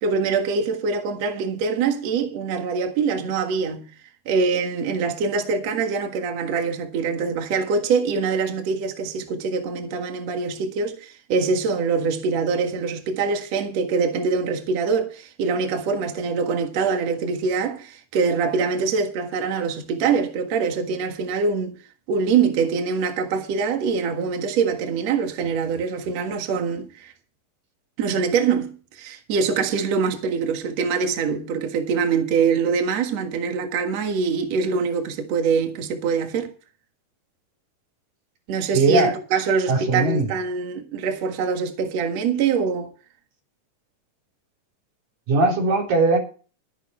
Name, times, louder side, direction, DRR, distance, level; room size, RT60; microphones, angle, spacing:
voice 1, 0.0-3.9 4.3-21.7 22.1-27.1 28.0-36.5 38.5-42.9, right 5 dB, 55° right, 2.7 m, -24 dB
voice 2, 38.7-39.1 39.7-40.3 45.3-46.2, right 3 dB, 90° right, 5.5 m, -19 dB
13.0 x 11.0 x 4.4 m
omnidirectional pair, 3.8 m